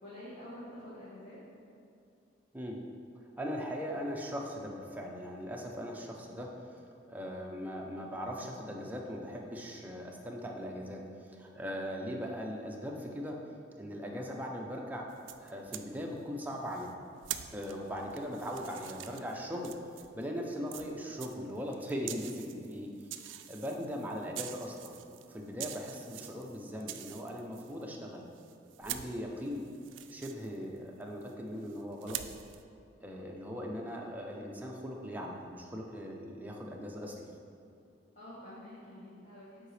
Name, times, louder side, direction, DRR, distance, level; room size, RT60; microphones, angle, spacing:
voice 1, 0.0-1.4 38.1-39.7, left 1 dB, 40° left, -11 dB, 1.5 m, -48 dB
voice 2, 3.4-6.5 7.1-13.4 13.8-15.1 15.4-16.9 17.5-19.7 20.1-22.9 23.2-25.0 25.3-28.2 28.8-29.6 30.1-32.2 33.0-37.3, equal, 10° right, -1 dB, 0.6 m, -39 dB
sound 1, 15.1-15.9 16.7-20.2 20.7-27.8 28.3-31.3 31.7-32.6, right 12 dB, 75° right, 0.3 m, -45 dB
7.6 x 4.7 x 3.3 m, 2.5 s
head